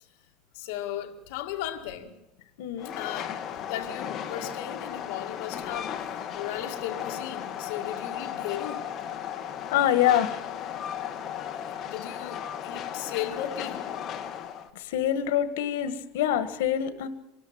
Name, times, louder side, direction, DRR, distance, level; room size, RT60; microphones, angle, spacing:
voice 1, 0.5-2.2 3.0-8.9 10.9-11.0 11.5-13.8, left 11 dB, 60° left, 2.0 m, -36 dB
voice 2, 2.6-2.9 9.7-10.3 14.7-17.1, left 11 dB, 85° left, 1.6 m, -25 dB
Train, 2.8-14.7, left 9 dB, 30° left, 1.2 m, -35 dB
24.5 x 13.0 x 8.9 m
cardioid pair, 170°, 0 cm